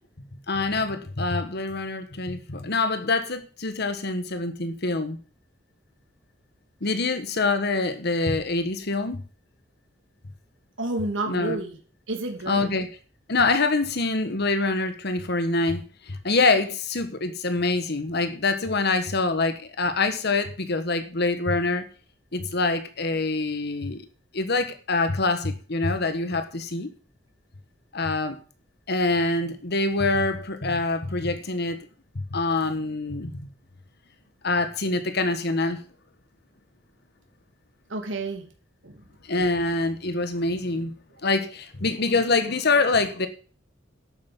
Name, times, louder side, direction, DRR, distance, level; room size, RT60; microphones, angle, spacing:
voice 1, 0.5-5.2 6.8-9.2 11.3-11.6 12.5-13.0 13.3-21.9 22.3-24.0 24.3-26.9 27.9-28.4 28.9-31.8 32.1-33.5 34.4-35.8 39.2-40.9 41.2-43.3, left 3 dB, 60° left, 1.4 m, -25 dB
voice 2, 10.8-11.8 12.1-12.7 37.9-38.4 38.8-39.0, right 2 dB, 80° right, 2.9 m, -30 dB
11.5 x 8.9 x 5.4 m
head